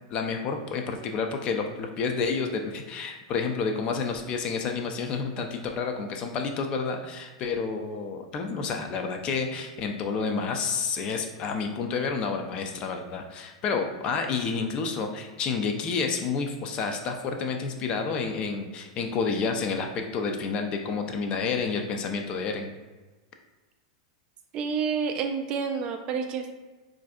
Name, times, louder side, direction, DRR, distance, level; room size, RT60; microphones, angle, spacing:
voice 1, 0.1-22.7, left 5 dB, 35° left, 4 dB, 0.4 m, -29 dB
voice 2, 24.5-26.5, right 6 dB, 35° right, 5 dB, 0.3 m, -29 dB
4.0 x 2.5 x 2.3 m, 1.2 s
figure-of-eight pair, 95°, 3 cm